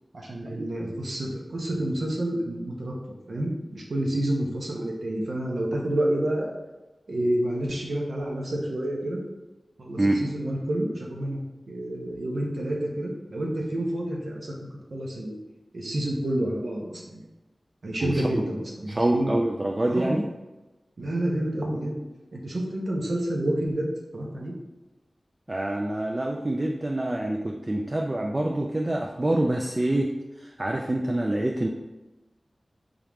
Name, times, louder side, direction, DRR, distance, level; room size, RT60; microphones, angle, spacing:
voice 1, 0.1-2.9 3.3-6.5 7.1-9.2 9.8-11.4 11.7-14.5 14.9-15.4 15.7-17.2 17.8-19.4 19.9-20.2 21.0-22.0 22.3-23.9 24.1-24.5, right 1 dB, 75° right, -1 dB, 0.8 m, -29 dB
voice 2, 18.0-18.5 18.9-20.3 25.5-31.7, right 1 dB, 30° right, 1 dB, 0.3 m, -26 dB
3.7 x 2.9 x 3.5 m, 1.1 s
wide cardioid pair, 70°, 0 cm